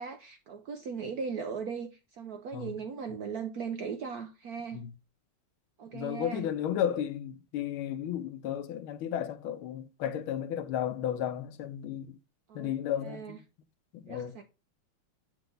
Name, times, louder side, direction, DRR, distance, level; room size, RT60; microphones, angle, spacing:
voice 1, 0.0-4.9 5.8-6.5 12.5-12.7 13.0-13.4 14.1-14.4, right 6 dB, 70° right, 0.9 m, -38 dB
voice 2, 5.9-12.2 12.5-13.4 13.9-14.4, left 10 dB, 80° left, 1.5 m, -33 dB
8.3 x 4.6 x 3.8 m
omnidirectional pair, 2.3 m